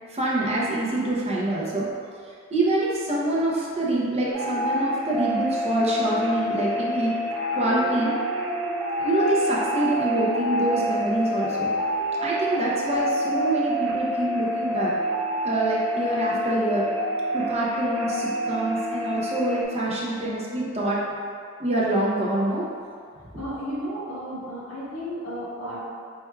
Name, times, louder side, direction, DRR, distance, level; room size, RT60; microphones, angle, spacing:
voice 1, 0.1-1.8 2.2-7.1 7.5-8.1 9.0-11.7 12.2-14.9 15.4-16.8 17.3-21.0 21.6-22.6, right 1 dB, 30° right, -5 dB, 0.7 m, -25 dB
sound 1, 4.3-19.6, equal, 65° right, 0.9 m, -27 dB
voice 2, 23.4-25.8, equal, 85° left, -8 dB, 1.5 m, -33 dB
4.5 x 4.3 x 2.3 m, 2.2 s
head